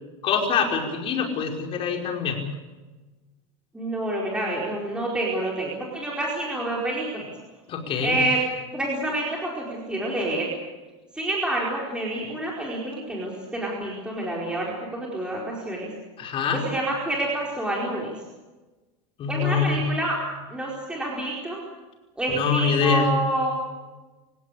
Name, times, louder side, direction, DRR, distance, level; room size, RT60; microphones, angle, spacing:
voice 1, 0.2-2.4 7.7-8.1 16.2-16.6 19.2-19.8 22.3-23.1, left 6 dB, 35° left, 1 dB, 5.3 m, -24 dB
voice 2, 3.7-7.2 8.0-8.4 8.7-10.5 11.1-15.9 16.5-18.1 19.3-20.2 20.5-21.6 22.2-23.5, right 1 dB, 5° right, -4 dB, 4.8 m, -28 dB
28.0 x 16.5 x 8.5 m, 1.2 s
supercardioid pair, 150°, 16 cm